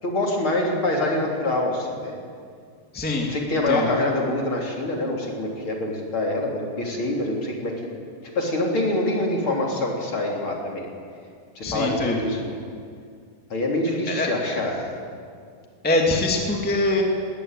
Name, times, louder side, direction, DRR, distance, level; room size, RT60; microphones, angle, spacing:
voice 1, 0.0-2.2 3.3-7.7 8.4-10.9 11.6-12.6 13.5-14.9, left 1 dB, 30° left, -1 dB, 3.8 m, -25 dB
voice 2, 2.9-3.3 3.7-3.8 11.6-12.2 14.1-14.3 15.8-17.0, left 2 dB, 5° left, 0 dB, 1.4 m, -23 dB
20.5 x 19.0 x 9.1 m, 2.2 s
omnidirectional pair, 4.7 m